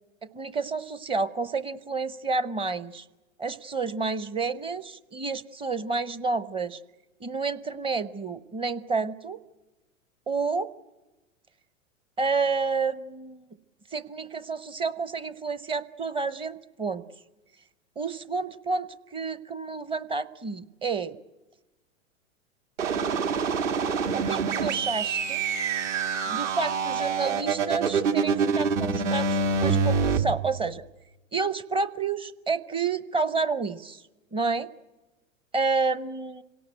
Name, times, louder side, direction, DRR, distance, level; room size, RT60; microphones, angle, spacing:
voice 1, 0.2-3.0 3.4-6.8 7.2-9.4 10.3-10.7 12.2-13.4 13.9-17.0 18.0-21.2 24.1-25.4 26.3-30.8 31.3-34.0 34.3-34.7 35.5-36.4, right 4 dB, 15° right, 15 dB, 0.7 m, -30 dB
sound 1, 22.8-30.2, right 5 dB, 65° right, 2.2 m, -26 dB
26.5 x 18.0 x 9.1 m, 1.1 s
figure-of-eight pair, 100°, 39 cm